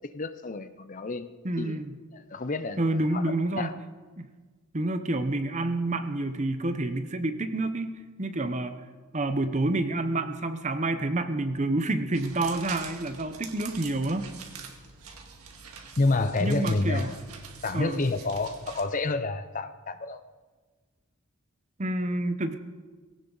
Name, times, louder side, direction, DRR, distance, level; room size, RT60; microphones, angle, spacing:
voice 1, 0.0-1.3 1.6-1.8 2.1-3.7 16.0-17.2 17.6-20.2, left 3 dB, 35° left, 11 dB, 0.6 m, -29 dB
voice 2, 1.4-2.0 2.8-3.7 4.2-4.3 4.7-8.8 9.1-14.3 16.4-17.1 17.7-18.1 21.8-22.6, right 2 dB, 30° right, 9 dB, 0.8 m, -28 dB
sound 1, 12.1-18.8, right 6 dB, 80° right, 1.8 m, -45 dB
19.0 x 17.0 x 4.0 m, 1.4 s
head